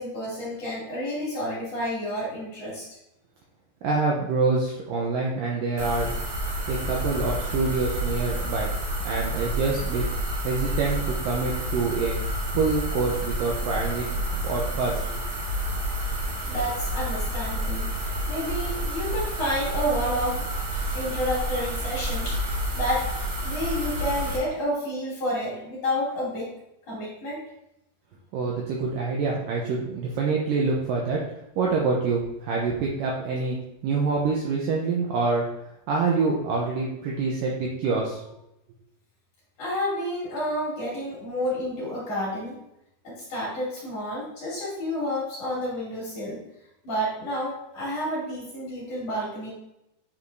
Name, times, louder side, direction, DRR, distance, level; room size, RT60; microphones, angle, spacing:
voice 1, 0.0-2.9 16.5-17.9 18.3-20.5 20.9-23.1 23.4-26.5 26.9-27.4 39.6-42.6 43.0-46.4 46.8-49.5, equal, 40° left, -8 dB, 3.4 m, -30 dB
voice 2, 3.8-6.1 6.7-8.7 9.1-10.1 10.4-12.2 12.5-14.1 14.4-15.2 28.3-31.2 31.6-33.6 33.8-35.5 35.9-38.2, right 4 dB, 80° right, -2 dB, 2.0 m, -26 dB
sound 1, 5.8-24.4, right 1 dB, 60° right, 2.3 m, -29 dB
8.7 x 4.7 x 2.6 m, 0.84 s
omnidirectional pair, 4.8 m